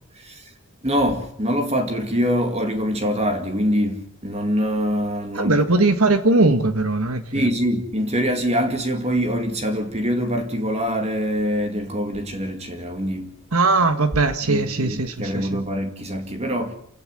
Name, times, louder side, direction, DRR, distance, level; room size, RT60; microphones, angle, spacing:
voice 1, 0.1-0.5 0.8-5.6 7.3-13.4 14.5-16.7, equal, 30° right, 2.2 m, -24 dB
voice 2, 5.3-7.5 13.5-15.6, right 3 dB, 70° right, 1.6 m, -20 dB
28.5 x 16.5 x 7.6 m
head